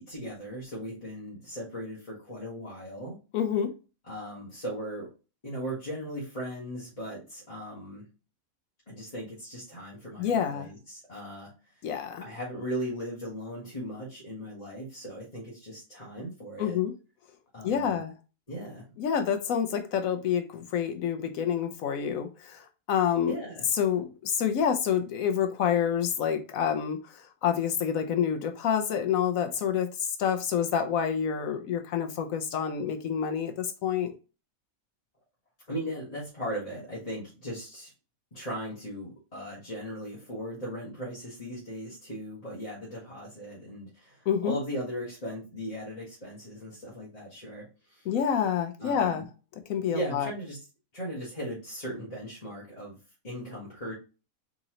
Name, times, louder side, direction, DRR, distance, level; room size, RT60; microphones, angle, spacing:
voice 1, 0.0-3.2 4.0-5.1 5.4-8.0 8.9-11.5 12.2-16.8 17.5-18.0 18.5-18.9 23.3-23.6 35.7-37.9 38.3-48.1 48.8-49.2 49.9-50.6 50.9-53.0 53.2-53.9, equal, 25° left, 1.4 m, -38 dB
voice 2, 3.3-3.7 10.2-10.7 11.8-12.2 16.6-16.9 17.6-18.1 19.0-23.4 23.7-34.1 44.3-44.5 48.1-49.3 49.7-50.3, left 8 dB, 75° left, 1.0 m, -28 dB
3.9 x 3.8 x 3.0 m
omnidirectional pair, 1.5 m